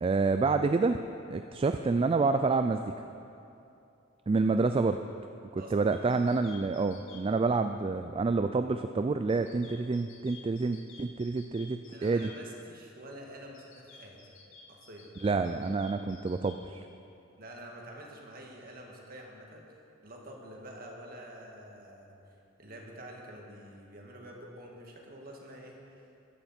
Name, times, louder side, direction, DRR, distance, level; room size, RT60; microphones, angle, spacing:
voice 1, 0.0-1.0 1.3-2.9 4.3-5.0 5.5-12.3 15.2-16.9, right 3 dB, 25° right, 8 dB, 0.3 m, -28 dB
sound 1, 5.9-7.2 9.3-12.4 13.5-16.6, left 5 dB, 80° left, 2.0 m, -53 dB
voice 2, 11.9-14.2 14.7-15.1 17.4-19.6 20.0-22.1 22.6-25.8, right 1 dB, 45° right, -1 dB, 1.9 m, -47 dB
14.5 x 11.5 x 4.4 m, 2.7 s
head